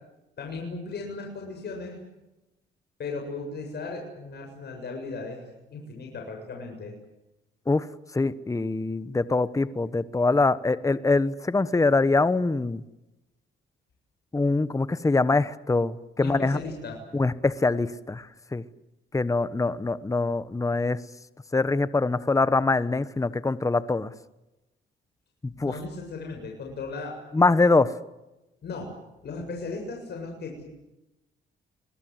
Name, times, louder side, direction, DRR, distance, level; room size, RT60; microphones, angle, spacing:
voice 1, 0.4-2.0 3.0-5.4 5.7-6.9 16.2-17.0 25.6-27.2 28.6-28.9 29.2-30.6, left 3 dB, 55° left, 1 dB, 7.4 m, -36 dB
voice 2, 8.1-12.8 14.3-16.6 17.1-18.3 18.5-18.6 19.1-21.0 21.5-24.1 25.4-25.7 27.3-27.9, left 3 dB, 15° left, 15 dB, 1.1 m, -24 dB
29.5 x 21.5 x 8.0 m, 0.96 s
cardioid pair, 90°, 20 cm